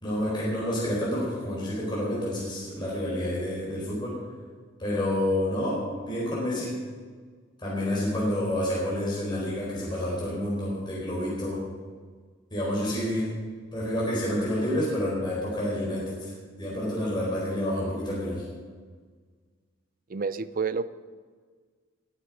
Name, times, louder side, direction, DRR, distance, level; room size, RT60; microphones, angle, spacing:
voice 1, 0.0-4.2 4.8-6.7 7.6-11.6 12.5-13.3 13.7-16.3 16.6-18.4, left 1 dB, 25° left, -6 dB, 4.3 m, -29 dB
voice 2, 20.1-20.9, right 5 dB, 45° right, 15 dB, 0.5 m, -29 dB
21.0 x 8.1 x 4.8 m, 1.5 s
head